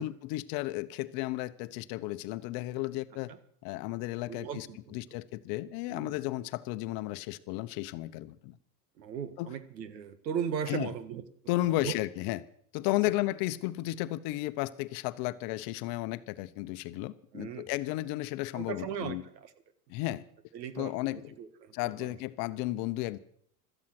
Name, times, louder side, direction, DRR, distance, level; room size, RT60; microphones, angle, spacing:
voice 1, 0.0-3.3 3.6-4.7 4.9-8.6 9.4-9.5 10.7-10.9 11.5-12.4 12.7-19.2 19.9-20.2 20.8-21.3 21.7-23.2, left 17 dB, 45° left, 13 dB, 0.9 m, -33 dB
voice 2, 4.3-5.0 5.9-6.2 9.0-11.2 11.8-12.0 17.3-17.7 18.5-19.5 20.5-21.7 22.0-22.1, right 8 dB, 80° right, 13 dB, 1.8 m, -37 dB
17.0 x 13.0 x 6.0 m, 0.64 s
hypercardioid pair, 115°, 50 cm